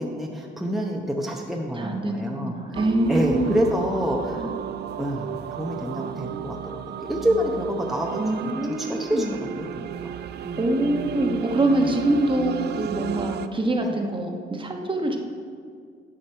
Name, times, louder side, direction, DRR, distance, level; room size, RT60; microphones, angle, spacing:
voice 1, 0.0-2.8 3.1-4.5 5.0-10.1 10.4-10.6 11.8-11.9 13.8-13.9, equal, ahead, -1 dB, 0.8 m, -28 dB
voice 2, 1.8-3.6 4.4-4.5 8.2-9.3 10.6-15.2, right 1 dB, 25° right, 2 dB, 1.1 m, -25 dB
sound 1, 2.7-13.5, right 10 dB, 55° right, 0.4 m, -34 dB
11.5 x 5.1 x 4.5 m, 2.1 s
cardioid pair, 90°, 20 cm